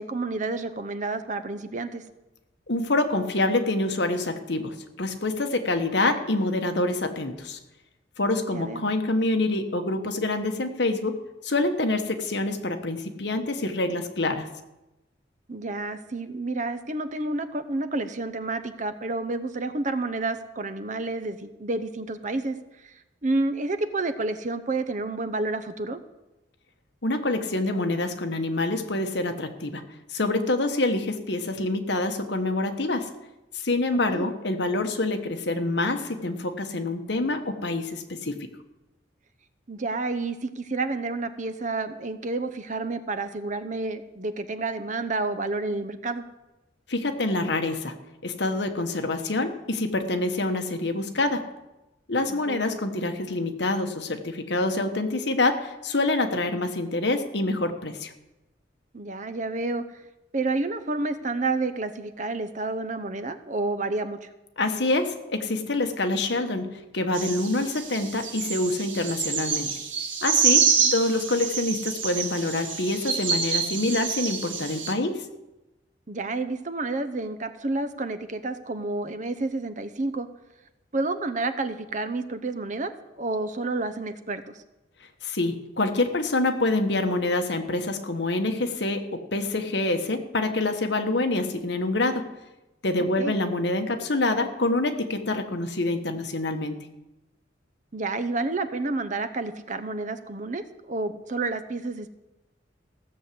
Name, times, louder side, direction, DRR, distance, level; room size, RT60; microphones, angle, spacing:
voice 1, 0.0-2.0 8.5-8.8 15.5-22.9 23.2-26.0 34.1-34.3 39.7-46.2 52.3-52.7 58.9-59.8 60.3-64.3 70.8-71.2 76.1-80.3 80.9-82.9 83.2-84.6 93.2-93.3 97.9-102.1, right 2 dB, 40° right, 10 dB, 0.8 m, -30 dB
voice 2, 2.7-7.6 8.2-14.5 27.0-29.8 30.1-33.1 33.5-38.5 46.9-51.5 52.1-58.1 64.6-69.7 70.2-75.3 85.2-92.3 92.8-96.8, left 2 dB, 65° left, 6 dB, 1.3 m, -26 dB
sound 1, 67.1-74.9, right 6 dB, 90° right, 2.0 m, -27 dB
15.5 x 7.0 x 7.7 m, 0.99 s
head